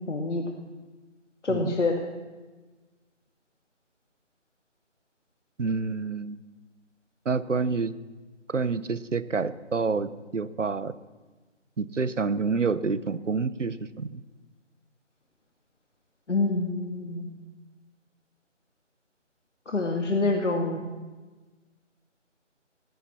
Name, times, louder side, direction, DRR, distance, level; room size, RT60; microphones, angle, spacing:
voice 1, 0.1-0.5 1.4-1.9 16.3-17.4 19.7-20.8, left 3 dB, 70° left, 2 dB, 2.0 m, -26 dB
voice 2, 5.6-6.4 7.2-7.9 8.5-10.9 11.8-14.2, right 4 dB, 75° right, 16 dB, 1.0 m, -28 dB
17.0 x 15.5 x 4.3 m, 1.3 s
figure-of-eight pair, 180°, 37 cm